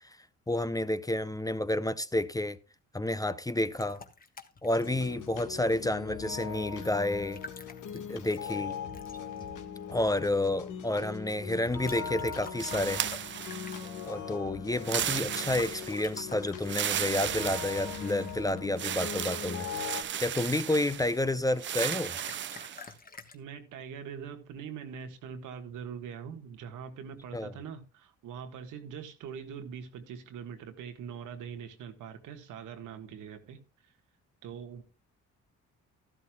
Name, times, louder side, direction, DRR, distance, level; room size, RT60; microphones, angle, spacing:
voice 1, 0.5-2.6 2.9-4.0 4.6-7.4 7.9-8.7 9.9-13.0 14.1-19.7 20.2-22.1 27.3-27.5, left 1 dB, 10° left, 0.6 m, -30 dB
sound 1, 3.8-5.5 7.2-9.5 11.7-14.1 15.3-19.9 21.3-23.4, left 4 dB, 30° left, 1.3 m, -49 dB
sound 2, 4.8-20.0, left 7 dB, 85° left, 1.6 m, -40 dB
sound 3, 12.6-14.1 14.8-16.1 16.6-18.3 18.8-21.2 21.6-22.8, right 10 dB, 40° right, 0.4 m, -35 dB
voice 2, 23.3-33.6 34.4-34.8, right 7 dB, 85° right, 1.6 m, -43 dB
13.0 x 12.0 x 2.3 m
cardioid pair, 90°, 30 cm